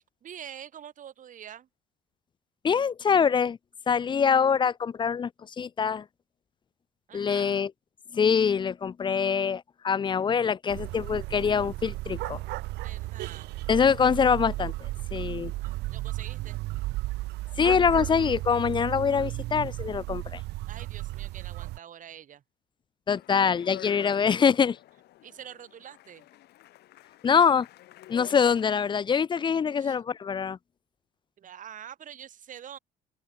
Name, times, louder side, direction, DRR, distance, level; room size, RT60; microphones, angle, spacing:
voice 1, 0.0-1.7 7.1-7.6 12.8-13.6 15.6-16.6 20.7-22.4 23.9-24.0 25.2-26.3 29.8-30.0 31.4-32.8, right 9 dB, 50° right, 2.4 m, -46 dB
voice 2, 2.6-3.6 3.9-5.3 5.6-6.0 7.1-7.7 8.1-12.4 13.7-15.5 17.6-20.4 23.1-24.8 27.2-27.7 28.1-30.6, left 6 dB, 30° left, 0.5 m, -24 dB
sound 1, 10.7-21.8, right 19 dB, 85° right, 0.9 m, -34 dB
Speech, 23.1-28.9, left 15 dB, 75° left, 2.9 m, -48 dB
open air
cardioid pair, 110°, 17 cm